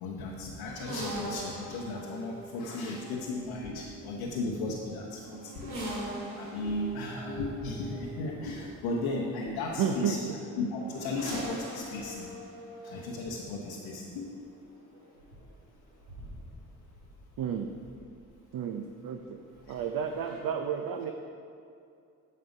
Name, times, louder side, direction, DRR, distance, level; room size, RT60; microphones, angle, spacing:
voice 1, 0.0-5.7 6.4-10.3 10.5-12.2 12.8-14.3, left 2 dB, 80° left, -2 dB, 1.1 m, -35 dB
sound 1, 0.6-18.4 19.5-20.4, right 1 dB, 80° right, 2.3 m, -43 dB
voice 2, 9.8-10.2 17.4-17.7 18.5-19.4 19.7-21.1, right 7 dB, 55° right, 5 dB, 0.8 m, -31 dB
9.6 x 6.7 x 5.2 m, 2.5 s
hypercardioid pair, 45°, 43 cm